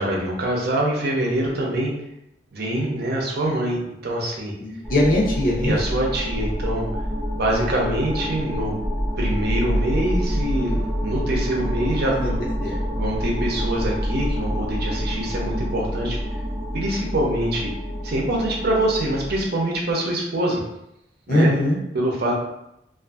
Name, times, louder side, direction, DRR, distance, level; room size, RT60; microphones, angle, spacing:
voice 1, 0.0-1.9 2.5-4.5 5.6-6.9 7.3-8.7 9.2-12.4 12.7-16.2 16.7-17.7 18.0-20.6 21.3-21.5 21.9-22.3, right 1 dB, 60° right, -2 dB, 0.6 m, -24 dB
voice 2, 4.6-5.8 12.1-12.3 12.6-12.8 21.3-21.8, left 1 dB, 50° left, -3 dB, 0.6 m, -20 dB
sound 1, 4.8-19.5, equal, 5° right, 0.7 m, -27 dB
2.5 x 2.4 x 2.3 m, 0.83 s
head